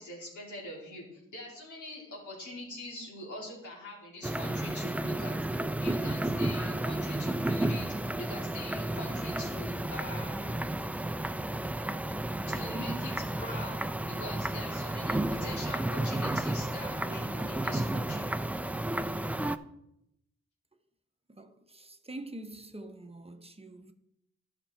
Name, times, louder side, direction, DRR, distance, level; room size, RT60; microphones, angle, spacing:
voice 1, 0.0-10.6 12.5-18.3, left 1 dB, 85° left, 3.1 m, -43 dB
sound 1, 4.2-19.6, right 1 dB, 5° right, 0.4 m, -32 dB
voice 2, 21.3-23.9, right 1 dB, 20° right, 0.9 m, -45 dB
11.5 x 6.0 x 4.4 m
cardioid pair, 65°, 29 cm